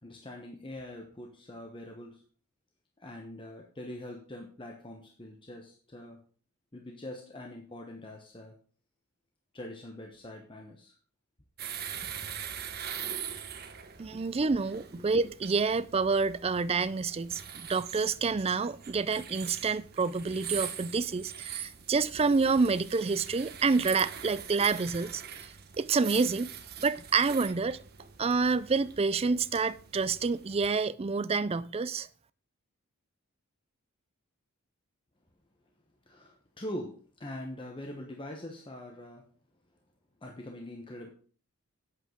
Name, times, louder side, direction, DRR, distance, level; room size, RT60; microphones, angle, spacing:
voice 1, 0.0-2.2 3.0-6.2 6.7-8.6 9.5-10.9 14.1-14.2 14.9-15.1 36.1-39.3 40.2-41.1, left 1 dB, 20° left, 1.1 m, -43 dB
sound 1, 11.6-30.7, right 8 dB, 45° right, 1.1 m, -42 dB
voice 2, 14.0-26.5 26.8-27.8 28.2-32.1, right 4 dB, 25° right, 0.4 m, -28 dB
8.7 x 8.1 x 5.0 m
head